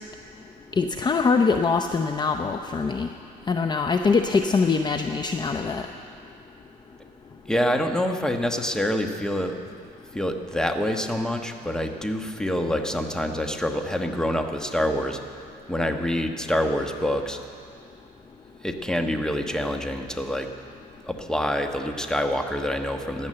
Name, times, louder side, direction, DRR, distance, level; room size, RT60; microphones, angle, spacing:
voice 1, 0.8-3.1 3.5-5.9, left 4 dB, 25° left, 6 dB, 0.6 m, -23 dB
voice 2, 7.5-9.6 10.1-15.2 15.7-17.4 18.6-20.5 21.0-23.3, left 1 dB, 5° left, 5 dB, 1.2 m, -26 dB
16.5 x 11.0 x 7.7 m, 2.5 s
cardioid pair, 110°, 17 cm